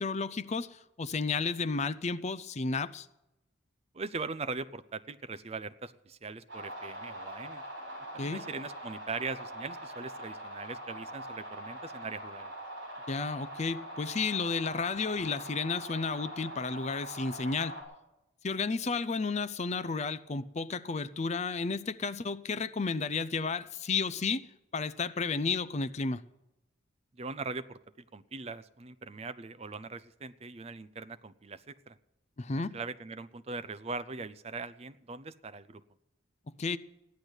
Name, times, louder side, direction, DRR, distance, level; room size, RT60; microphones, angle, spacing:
voice 1, 0.0-3.1 8.2-8.4 13.1-17.8 18.4-26.2 32.4-32.8 36.6-36.8, left 4 dB, 35° left, 0.5 m, -32 dB
voice 2, 3.9-7.6 8.1-12.5 27.2-32.0 32.5-35.8, right 4 dB, 30° right, 0.5 m, -41 dB
sound 1, 6.5-17.8, right 1 dB, 55° right, 7.3 m, -43 dB
15.0 x 10.5 x 8.0 m
head